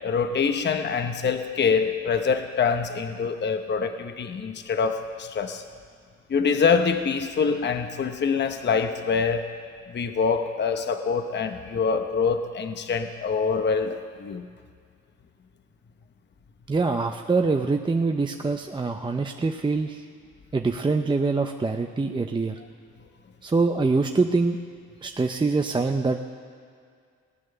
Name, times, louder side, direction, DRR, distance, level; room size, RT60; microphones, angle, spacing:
voice 1, 0.0-5.6 6.3-9.5 9.9-14.5, left 5 dB, 35° left, 7 dB, 0.8 m, -25 dB
voice 2, 16.7-20.1 20.5-22.6 23.4-24.6 25.0-26.2, right 3 dB, 15° right, 4 dB, 0.6 m, -24 dB
18.5 x 9.0 x 6.7 m, 2.1 s
cardioid pair, 90°, 30 cm